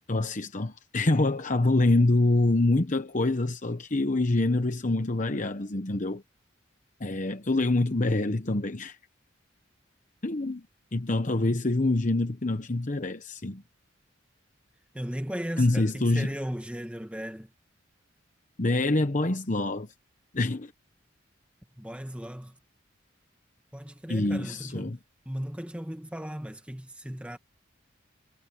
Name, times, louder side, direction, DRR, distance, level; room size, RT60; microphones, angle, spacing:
voice 1, 0.1-6.2 7.0-9.0 10.2-10.6 10.9-13.6 15.6-16.3 18.6-19.9 20.3-20.7 24.1-25.0, left 2 dB, 40° left, 1.0 m, -25 dB
voice 2, 14.9-17.5 21.8-22.6 23.7-25.0 25.2-27.4, equal, 5° right, 1.6 m, -36 dB
head